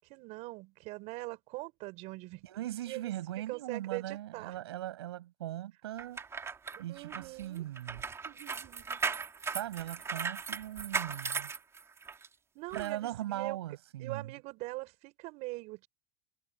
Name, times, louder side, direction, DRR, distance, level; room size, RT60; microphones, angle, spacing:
voice 1, 0.0-2.5 2.8-3.1 3.5-4.6 6.9-7.6 8.2-9.0 12.5-13.6 14.0-15.9, right 23 dB, 60° right, 6.4 m, -42 dB
voice 2, 2.4-6.2 6.8-8.0 9.5-11.5 12.7-14.3, right 14 dB, 90° right, 7.3 m, -39 dB
sound 1, 6.0-12.3 12.7-12.9, right 5 dB, 20° right, 3.7 m, -37 dB
supercardioid pair, 115°, 13 cm